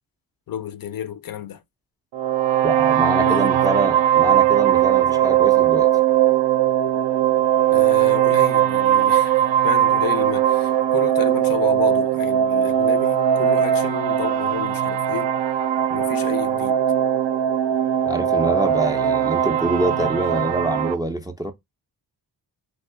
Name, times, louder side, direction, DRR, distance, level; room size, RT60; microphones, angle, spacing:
voice 1, 0.5-1.6 3.2-3.6 7.7-15.4 15.9-16.8, left 10 dB, 55° left, 0.5 m, -31 dB
sound 1, 2.1-20.9, right 10 dB, 75° right, 0.5 m, -19 dB
voice 2, 2.6-5.9 18.1-21.5, right 1 dB, 10° right, 0.3 m, -25 dB
3.6 x 2.5 x 2.4 m
wide cardioid pair, 110°, 43 cm